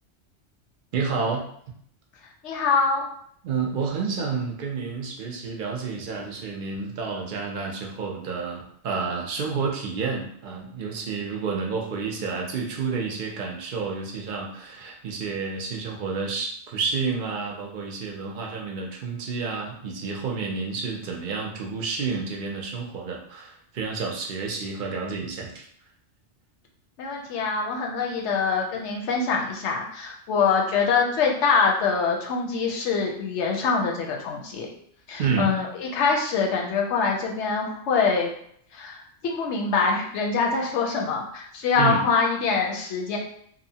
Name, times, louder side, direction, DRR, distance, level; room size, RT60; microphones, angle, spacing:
voice 1, 0.9-1.5 3.4-25.6 35.2-35.6 41.8-42.0, right 5 dB, 55° right, 0 dB, 0.6 m, -30 dB
voice 2, 2.4-3.1 27.0-34.7 35.1-38.3 38.7-43.2, left 5 dB, 75° left, 0 dB, 0.9 m, -24 dB
2.8 x 2.0 x 2.7 m, 0.66 s
omnidirectional pair, 1.2 m